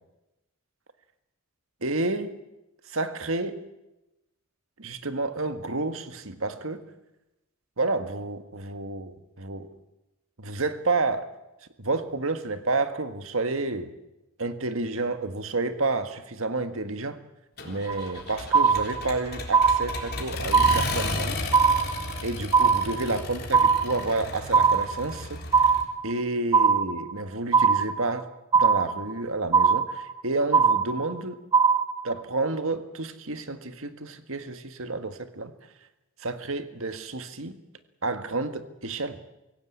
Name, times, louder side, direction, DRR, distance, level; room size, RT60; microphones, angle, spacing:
voice 1, 1.8-2.4 2.9-3.6 4.8-6.8 7.8-9.7 10.4-11.3 11.8-13.9 14.4-17.2 17.7-21.4 22.2-25.4 26.0-28.3 28.5-31.4 32.0-35.5 36.2-37.6 38.0-39.2, right 3 dB, 70° right, 9 dB, 1.7 m, -30 dB
Accelerating revving vroom, 17.6-25.8, left 2 dB, 45° left, 3.7 m, -34 dB
sound 1, 17.9-18.2 18.5-19.2 19.5-20.2 20.5-21.2 21.5-22.2 22.5-23.2 23.5-24.2 24.5-25.2 25.5-26.2 26.5-27.2 27.5-28.2 28.5-29.2 29.5-30.2 30.5-31.2 31.5-32.2, right 6 dB, 20° right, 1.1 m, -21 dB
25.0 x 16.5 x 8.6 m, 0.97 s
head